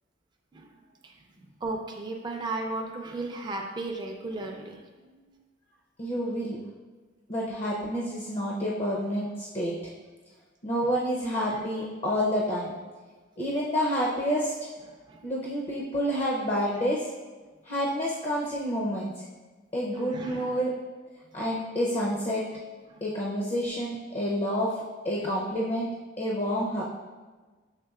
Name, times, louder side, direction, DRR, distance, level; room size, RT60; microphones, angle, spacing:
voice 1, 1.0-4.8 11.5-11.7 15.1-15.2 19.9-20.7 22.9-23.0 25.2-25.3, right 2 dB, 25° right, 1 dB, 0.4 m, -36 dB
voice 2, 6.0-6.6 7.3-9.7 10.6-12.7 13.4-14.5 15.2-17.1 17.6-19.2 19.7-20.7 21.3-22.4 23.0-25.9 26.2-26.8, equal, 30° left, -4 dB, 0.5 m, -29 dB
6.5 x 3.4 x 2.3 m, 1.3 s
head